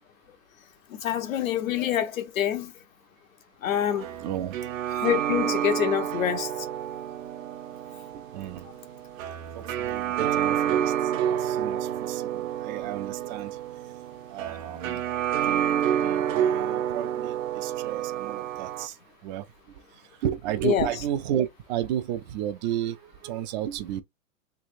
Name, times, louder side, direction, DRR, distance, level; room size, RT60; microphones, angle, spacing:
voice 1, 0.9-2.7 3.6-4.1 5.0-6.5 20.6-20.9, left 10 dB, 90° left, 0.9 m, -26 dB
sound 1, 3.7-18.9, right 10 dB, 80° right, 0.8 m, -29 dB
voice 2, 4.2-4.5 8.1-8.7 9.5-10.9 11.3-13.6 14.3-15.0 15.5-19.0 19.2-19.4 20.2-24.0, right 11 dB, 35° right, 0.4 m, -32 dB
3.3 x 3.1 x 2.5 m
hypercardioid pair, 130°, 39 cm